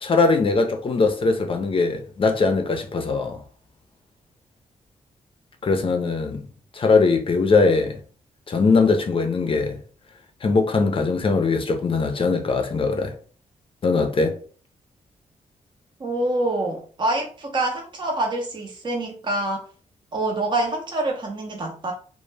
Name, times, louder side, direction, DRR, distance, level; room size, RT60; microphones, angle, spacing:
voice 1, 0.0-3.4 5.6-6.4 6.7-8.0 8.5-9.8 10.4-13.1 13.8-14.4, left 4 dB, 40° left, 0.5 m, -21 dB
voice 2, 16.0-19.6 20.1-21.9, right 2 dB, 35° right, 0.5 m, -26 dB
2.1 x 2.0 x 3.2 m
cardioid pair, 70°, 14 cm